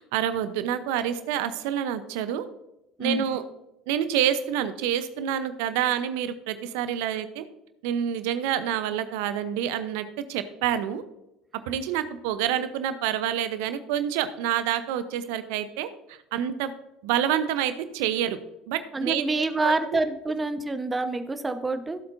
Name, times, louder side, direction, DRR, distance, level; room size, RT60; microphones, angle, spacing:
voice 1, 0.0-2.5 3.0-3.4 3.9-7.4 7.8-11.0 11.7-16.7 17.0-18.4 18.7-20.0, right 10 dB, 65° right, 11 dB, 0.8 m, -28 dB
voice 2, 18.9-22.0, right 2 dB, 20° right, 9 dB, 1.1 m, -27 dB
16.0 x 8.0 x 2.7 m, 0.88 s
hypercardioid pair, 65°, 0 cm